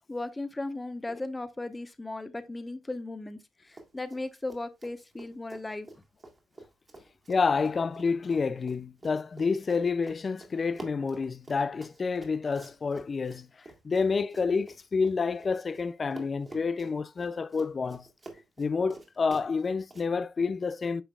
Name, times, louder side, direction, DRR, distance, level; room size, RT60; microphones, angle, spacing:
voice 1, 0.1-5.9, left 2 dB, 15° left, 1.0 m, -37 dB
Run, 3.7-4.2 4.5-15.8 16.1-20.1, right 2 dB, 30° right, 1.9 m, -48 dB
voice 2, 7.3-13.5 13.8-18.1 18.6-21.0, left 5 dB, 35° left, 0.4 m, -29 dB
8.8 x 5.0 x 2.4 m
cardioid pair, 90°, 0 cm